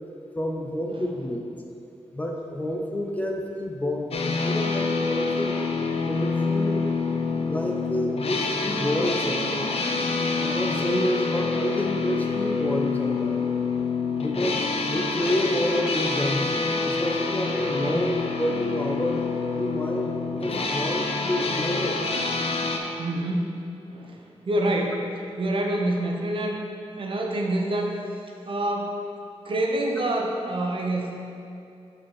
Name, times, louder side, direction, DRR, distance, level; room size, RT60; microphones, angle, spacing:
voice 1, 0.4-1.6 2.1-5.6 6.1-6.8 7.5-9.8 10.4-13.5 14.2-19.3 19.5-22.0, left 1 dB, 15° left, 1 dB, 0.5 m, -29 dB
sound 1, 4.1-22.8, left 4 dB, 60° left, 0.6 m, -27 dB
voice 2, 10.7-11.1 17.7-17.9 23.0-23.6 23.9-25.0 25.4-26.6 27.0-27.9 28.5-28.9 29.4-31.2, right 1 dB, 50° right, 0 dB, 0.8 m, -27 dB
7.3 x 4.4 x 4.6 m, 2.6 s
wide cardioid pair, 140°, 11 cm